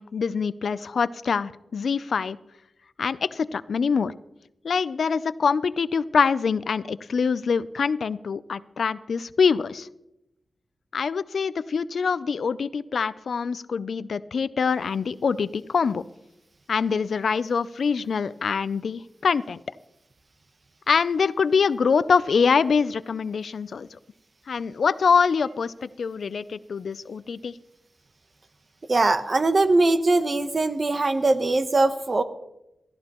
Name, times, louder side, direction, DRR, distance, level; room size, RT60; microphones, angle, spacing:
voice 1, 0.0-2.4 3.0-4.1 4.6-9.9 10.9-16.0 16.7-19.6 20.9-24.0 24.5-27.5, left 5 dB, 75° left, 17 dB, 0.4 m, -24 dB
voice 2, 28.9-32.2, right 2 dB, 40° right, 10 dB, 0.9 m, -21 dB
16.5 x 14.0 x 3.0 m, 0.88 s
wide cardioid pair, 95°, 0 cm